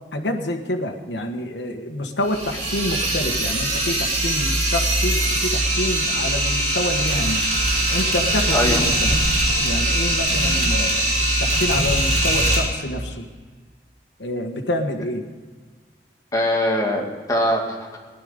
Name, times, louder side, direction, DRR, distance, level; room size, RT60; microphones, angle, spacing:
voice 1, 0.1-7.4 7.9-9.2 9.6-11.1 11.4-13.3 14.2-15.3, left 1 dB, 85° left, 3 dB, 1.5 m, -27 dB
sound 1, 2.2-12.6, right 1 dB, 40° right, 3.2 m, -21 dB
voice 2, 8.5-8.8 16.3-18.0, left 1 dB, 20° left, 0 dB, 2.2 m, -22 dB
16.5 x 11.0 x 5.2 m, 1.4 s
head